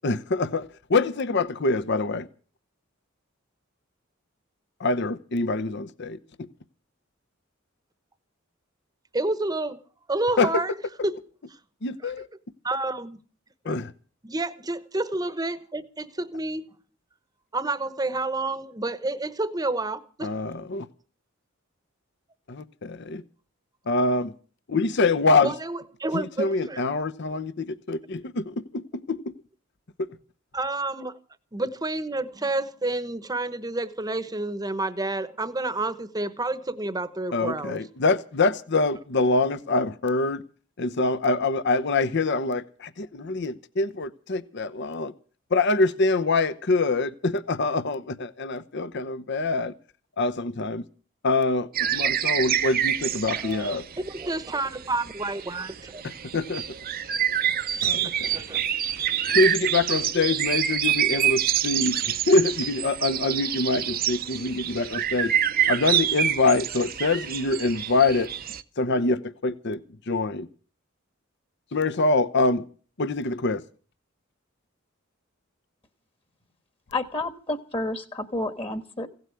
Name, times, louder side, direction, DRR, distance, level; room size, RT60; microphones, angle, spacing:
voice 1, 0.0-2.3 4.8-6.2 10.4-10.6 11.8-12.3 13.6-13.9 20.2-20.9 22.5-23.2 23.9-24.3 24.7-25.5 26.1-29.3 37.3-40.4 40.8-45.1 45.5-49.7 50.2-50.8 51.2-53.8 56.3-56.6 57.8-58.4 59.3-65.3 65.7-68.3 68.8-69.8 70.1-70.5 71.7-72.6 73.0-73.6, left 3 dB, 60° left, 0.8 m, -25 dB
voice 2, 9.1-9.8 10.1-10.7 11.0-11.2 12.0-12.1 12.6-13.2 13.6-13.8 14.2-16.6 17.5-20.3 25.4-26.8 30.5-31.2 31.5-37.8 52.0-52.1 53.4-53.8 54.0-56.0 58.0-58.6, right 2 dB, 20° right, 1.0 m, -29 dB
sound 1, 51.7-68.6, right 10 dB, 45° right, 0.7 m, -27 dB
voice 3, 76.9-79.1, left 2 dB, 25° left, 1.4 m, -30 dB
16.5 x 8.0 x 9.4 m
head